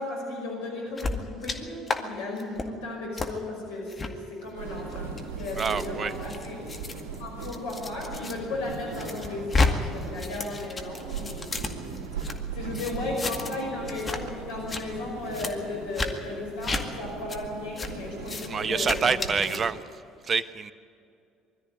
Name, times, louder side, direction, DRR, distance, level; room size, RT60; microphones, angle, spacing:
voice 1, 0.0-6.6 7.2-11.5 11.9-19.5, left 2 dB, 75° left, -1 dB, 5.3 m, -35 dB
sound 1, 1.0-1.6 1.9-2.0 2.4-2.7 3.2-3.3 3.9-4.1 4.8-8.3 8.7-9.7 10.0-12.3 12.7-13.6 13.9-14.2 14.5-14.8 15.3-15.5 15.9-16.1 16.6-16.8 17.3-17.4 17.8-17.9 18.2-18.5 18.8-19.6, left 3 dB, 30° left, 2.1 m, -31 dB
sound 2, 4.5-19.7, right 5 dB, 75° right, 3.2 m, -39 dB
voice 2, 5.6-6.1 18.5-19.8 20.2-20.7, right 5 dB, 40° right, 14 dB, 1.0 m, -27 dB
21.5 x 13.5 x 9.9 m, 2.5 s
hypercardioid pair, 60°, 0 cm